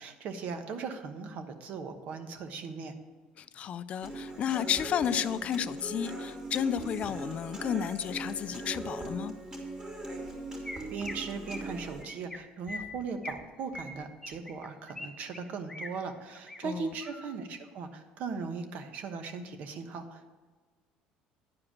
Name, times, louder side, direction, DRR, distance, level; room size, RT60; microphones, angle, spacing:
voice 1, 0.0-2.9 10.9-20.3, right 5 dB, 60° right, 7 dB, 1.1 m, -38 dB
voice 2, 3.4-9.3 16.6-16.9, left 9 dB, 45° left, 15 dB, 0.4 m, -32 dB
Human voice / Acoustic guitar, 4.0-12.0, right 2 dB, 25° right, 2.6 m, -40 dB
Chirp tweet, 10.3-10.4 10.6-11.1 11.5-11.7 12.0-12.4 12.7-13.4 13.7-15.1 15.3-15.9 16.3-16.6 17.0-17.4, left 2 dB, 10° left, 1.0 m, -42 dB
10.5 x 4.9 x 7.2 m, 1.4 s
cardioid pair, 120°, 3 cm